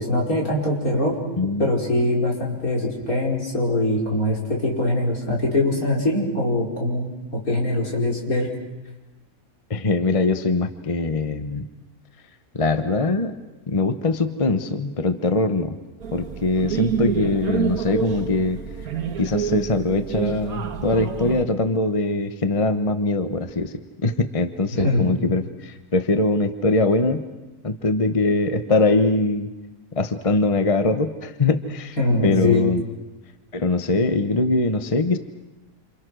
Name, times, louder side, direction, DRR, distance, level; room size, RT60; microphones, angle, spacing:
voice 1, 0.0-1.2 1.6-8.5 24.8-25.1 32.0-32.7, left 1 dB, 70° left, -2 dB, 5.5 m, -22 dB
voice 2, 1.4-1.7 9.7-11.7 12.5-13.3 13.7-15.8 16.1-18.6 19.2-23.7 24.0-27.2 27.6-29.5 30.0-32.0 32.2-32.8 33.5-35.2, left 2 dB, 25° left, 9 dB, 1.0 m, -22 dB
sound 1, 16.0-21.4, right 8 dB, 70° right, 1.7 m, -28 dB
28.5 x 28.0 x 6.3 m, 1.0 s
omnidirectional pair, 1.6 m